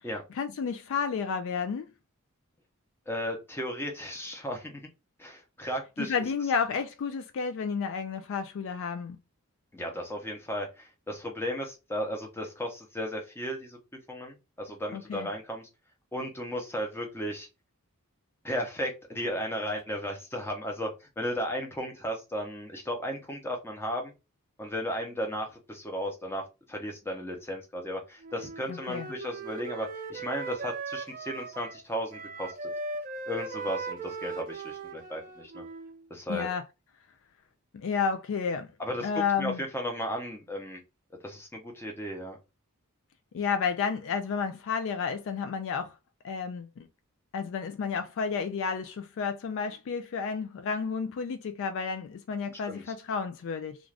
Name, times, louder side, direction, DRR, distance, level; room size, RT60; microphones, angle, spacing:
voice 1, 0.3-1.9 6.1-9.2 14.9-15.3 28.7-29.1 36.3-36.6 37.7-38.7 39.0-39.6 43.3-45.9 46.2-46.9 47.3-53.8, left 6 dB, 60° left, 0.3 m, -31 dB
voice 2, 3.1-4.9 5.2-6.1 9.7-13.8 14.1-15.7 16.1-17.5 18.4-24.1 24.6-26.4 26.7-32.7 33.3-35.6 36.1-36.5 38.8-39.1 39.4-40.8 41.2-42.4 52.7-52.9, equal, 10° left, 0.7 m, -35 dB
Wind instrument woodwind instrument, 28.2-36.0, right 3 dB, 40° right, 0.4 m, -39 dB
2.4 x 2.4 x 3.2 m
head